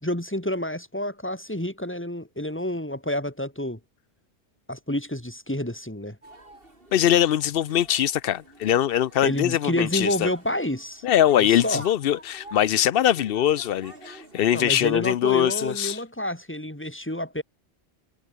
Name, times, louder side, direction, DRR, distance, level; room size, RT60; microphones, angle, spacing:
voice 1, 0.0-3.8 4.7-6.2 9.2-11.0 11.4-11.8 14.5-17.4, left 1 dB, 10° left, 3.5 m, -29 dB
sound 1, 6.2-14.5, right 2 dB, 60° right, 4.9 m, -49 dB
voice 2, 6.9-10.3 11.0-16.0, left 11 dB, 70° left, 0.7 m, -22 dB
omnidirectional pair, 1.1 m